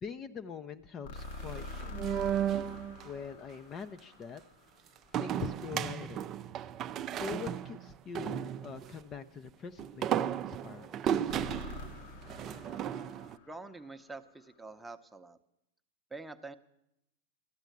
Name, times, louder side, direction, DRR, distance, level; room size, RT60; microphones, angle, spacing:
voice 1, 0.0-2.3 3.0-4.4 5.1-6.3 7.1-11.3, left 6 dB, 30° left, 10 dB, 0.5 m, -43 dB
sound 1, 1.0-5.1 11.3-14.4, left 2 dB, 60° left, 1.2 m, -46 dB
sound 2, 1.2-3.1 5.1-9.0 9.8-13.4, right 10 dB, 35° right, 0.5 m, -35 dB
voice 2, 13.4-15.4 16.1-16.6, right 3 dB, 5° right, 7 dB, 0.8 m, -46 dB
13.0 x 8.1 x 9.2 m, 0.84 s
hypercardioid pair, 115°, 0 cm